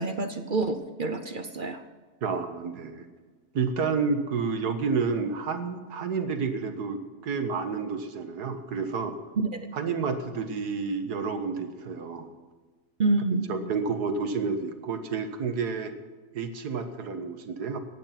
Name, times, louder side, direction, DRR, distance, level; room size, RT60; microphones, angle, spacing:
voice 1, 0.0-1.8 9.4-9.7 13.0-13.5, right 3 dB, 40° right, 8 dB, 0.8 m, -27 dB
voice 2, 2.2-3.1 3.5-9.2 9.7-12.3 13.5-15.9 16.3-17.8, right 5 dB, 80° right, 8 dB, 1.8 m, -30 dB
16.0 x 10.5 x 5.8 m, 1.3 s
omnidirectional pair, 1.7 m